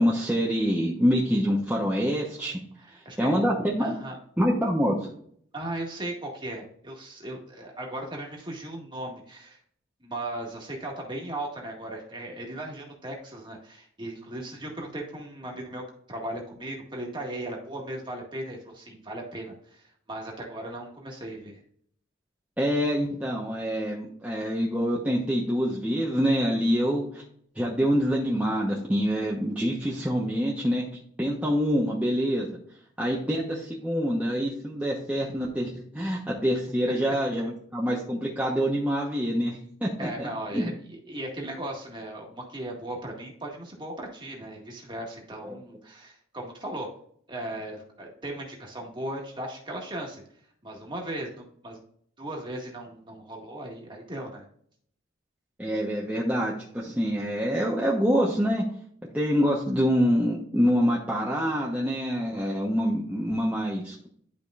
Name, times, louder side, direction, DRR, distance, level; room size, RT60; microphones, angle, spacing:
voice 1, 0.0-2.6 3.2-3.9 4.4-5.1 22.6-27.2 27.5-30.9 31.2-32.5 33.0-40.3 40.5-40.7 45.4-45.5 55.6-58.6 59.1-63.9, equal, 10° right, -5 dB, 1.0 m, -26 dB
voice 2, 2.8-3.4 3.8-4.2 5.5-9.6 10.0-21.6 40.0-46.9 47.3-50.2 50.6-51.8 52.2-54.5, right 1 dB, 25° right, -1 dB, 1.8 m, -37 dB
11.5 x 5.1 x 2.5 m, 0.62 s
head